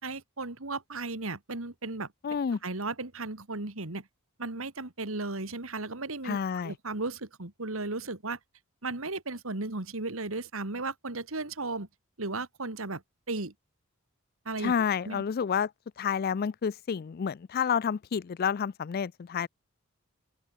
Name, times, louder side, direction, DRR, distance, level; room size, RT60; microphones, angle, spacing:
voice 1, 0.0-2.1 2.6-4.1 4.4-6.4 6.6-8.4 8.8-11.9 12.2-13.5 14.5-14.7 15.1-15.2, right 3 dB, 70° right, 2.2 m, -35 dB
voice 2, 2.2-2.6 6.2-6.7 14.6-15.7 16.0-19.5, left 7 dB, 45° left, 0.4 m, -29 dB
open air
head